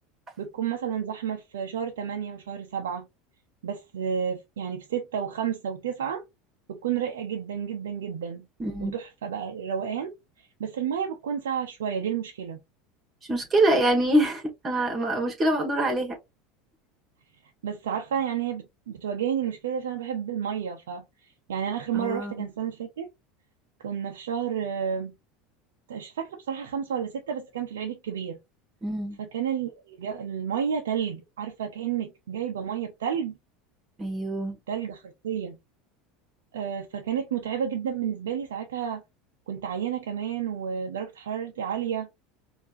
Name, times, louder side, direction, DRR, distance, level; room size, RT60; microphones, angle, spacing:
voice 1, 0.4-3.1 3.6-6.2 6.7-8.5 8.8-10.1 10.4-12.6 17.6-23.1 23.8-25.1 25.9-28.4 29.2-33.4 34.7-35.6 36.5-39.0 39.5-42.1, right 8 dB, 85° right, 0.6 m, -31 dB
voice 2, 8.6-9.0 13.3-16.2 21.9-22.3 28.8-29.2 34.0-34.6, right 1 dB, 30° right, 1.8 m, -25 dB
4.4 x 2.7 x 2.7 m
hypercardioid pair, 85°, 0 cm